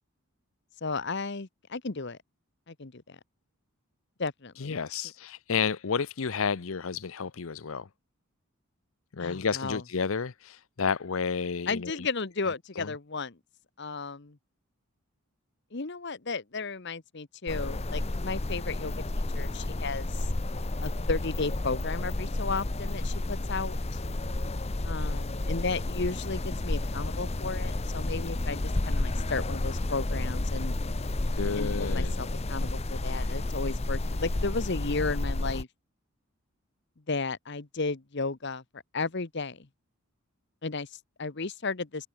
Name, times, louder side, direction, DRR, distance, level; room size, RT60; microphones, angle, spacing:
voice 1, 0.8-2.2 2.7-3.2 4.2-4.8 9.2-9.8 11.7-13.4 13.8-14.4 15.7-19.0 19.3-20.3 20.8-23.8 24.8-30.8 31.6-35.7 37.1-39.7 40.6-42.1, left 4 dB, 50° left, 1.0 m, -34 dB
voice 2, 4.6-7.9 9.1-12.1 12.8-12.9 31.3-32.1, left 5 dB, 65° left, 0.7 m, -31 dB
sound 1, 17.5-35.6, left 2 dB, 30° left, 0.8 m, -31 dB
head